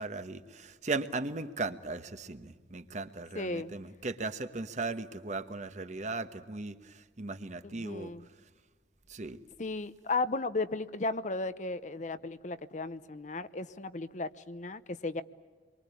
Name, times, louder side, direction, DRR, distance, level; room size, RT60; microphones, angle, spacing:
voice 1, 0.0-8.1 9.1-9.4, right 3 dB, 40° right, 9 dB, 1.2 m, -37 dB
voice 2, 3.3-3.7 7.6-8.2 9.6-15.2, left 3 dB, 45° left, 13 dB, 0.8 m, -35 dB
27.5 x 23.0 x 8.5 m, 1.4 s
head